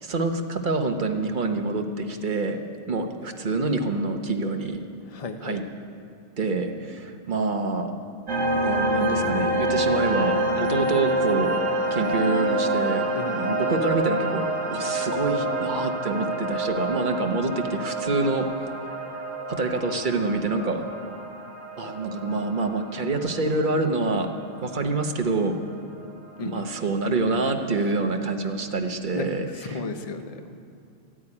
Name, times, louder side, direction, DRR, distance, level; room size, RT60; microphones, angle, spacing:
voice 1, 0.0-2.6 2.9-4.8 5.4-5.6 6.4-7.9 8.5-11.6 11.9-14.4 14.7-18.5 19.5-20.8 21.8-24.3 24.6-25.6 26.4-29.8, right 3 dB, 45° right, 5 dB, 1.1 m, -26 dB
voice 2, 5.1-5.6 13.2-13.6 26.4-26.6 29.1-29.3 29.6-30.6, left 3 dB, 35° left, 7 dB, 0.8 m, -34 dB
sound 1, 8.3-25.3, right 1 dB, 85° right, 2.0 m, -27 dB
13.5 x 8.8 x 9.8 m, 2.4 s
omnidirectional pair, 1.3 m